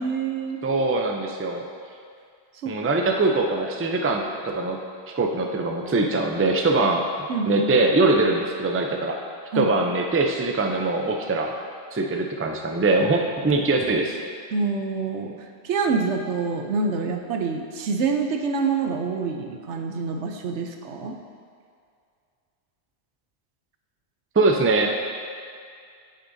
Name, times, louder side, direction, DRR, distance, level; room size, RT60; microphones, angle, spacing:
voice 1, 0.0-0.6 2.6-2.7 7.3-7.7 9.5-9.7 14.5-15.4 15.6-21.2, right 4 dB, 90° right, 4 dB, 1.0 m, -26 dB
voice 2, 0.6-1.7 2.7-4.8 5.2-7.0 7.5-9.2 9.5-11.5 11.9-14.2 24.4-25.2, right 2 dB, 20° right, 2 dB, 0.3 m, -22 dB
8.7 x 7.8 x 2.7 m, 2.3 s
omnidirectional pair, 1.1 m